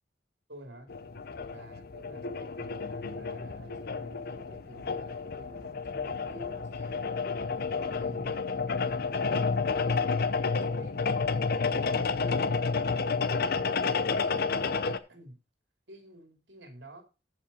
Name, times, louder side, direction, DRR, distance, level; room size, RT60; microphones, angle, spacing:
voice 1, 0.5-0.9 1.5-7.1 7.7-8.5 8.8-10.0 10.6-11.1 11.7-14.1 15.1-15.4 15.9-17.0, equal, 70° right, 4 dB, 3.1 m, -50 dB
sound 1, 0.9-15.0, left 4 dB, 55° left, 0.7 m, -30 dB
14.0 x 5.5 x 4.2 m, 0.31 s
head